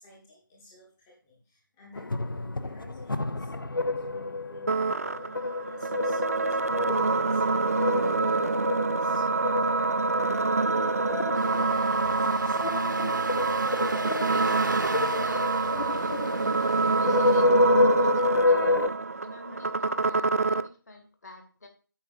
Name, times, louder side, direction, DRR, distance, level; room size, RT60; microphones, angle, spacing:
voice 1, 0.0-13.1, left 2 dB, 10° left, -3 dB, 0.8 m, -53 dB
sound 1, 2.0-18.9, left 2 dB, 75° left, 0.7 m, -29 dB
sound 2, 4.7-20.7, right 3 dB, 45° right, 0.4 m, -26 dB
Engine starting, 11.3-17.4, right 3 dB, 60° right, 1.0 m, -38 dB
voice 2, 14.2-18.8 19.2-21.7, left 2 dB, 50° left, 5 dB, 2.0 m, -48 dB
8.6 x 5.3 x 5.3 m, 0.39 s
figure-of-eight pair, 165°, 11 cm